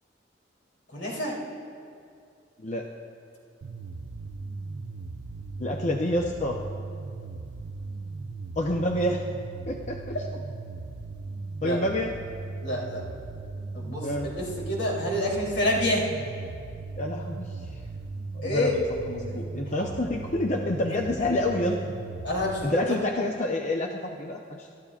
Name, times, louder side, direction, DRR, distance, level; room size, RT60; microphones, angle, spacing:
voice 1, 0.9-1.4 11.6-11.8 12.6-13.0 13.7-16.1 18.4-18.8 19.8-20.1 21.4-21.5 22.2-23.0, left 1 dB, 75° left, -3 dB, 3.2 m, -28 dB
sound 1, 3.6-22.6, right 3 dB, 90° right, 0.6 m, -38 dB
voice 2, 5.6-6.6 8.6-9.2 9.7-10.1 11.6-12.1 14.0-14.3 17.0-17.8 18.3-18.8 19.1-21.8 22.6-24.7, left 1 dB, 40° left, 1 dB, 0.7 m, -28 dB
28.0 x 13.0 x 2.4 m, 2.4 s
head